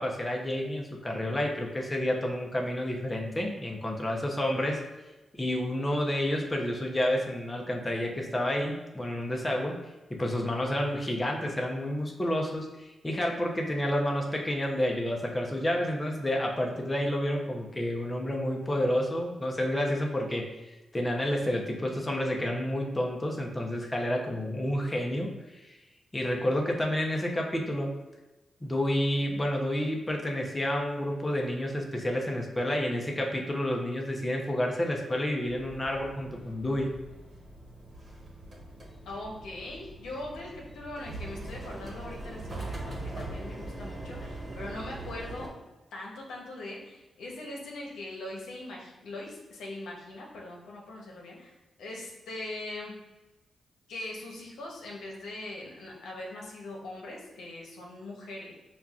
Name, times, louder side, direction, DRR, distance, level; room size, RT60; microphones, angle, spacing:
voice 1, 0.0-4.8 5.3-9.8 10.1-20.5 20.9-25.8 26.1-28.0 28.6-36.9, left 1 dB, 20° left, 0 dB, 0.7 m, -30 dB
sound 1, 35.4-45.5, right 2 dB, 40° right, 1.2 m, -41 dB
voice 2, 39.0-45.5 45.9-52.9 53.9-58.6, left 2 dB, 90° left, -2 dB, 0.8 m, -41 dB
5.3 x 2.4 x 2.4 m, 1.1 s
cardioid pair, 55°, 0 cm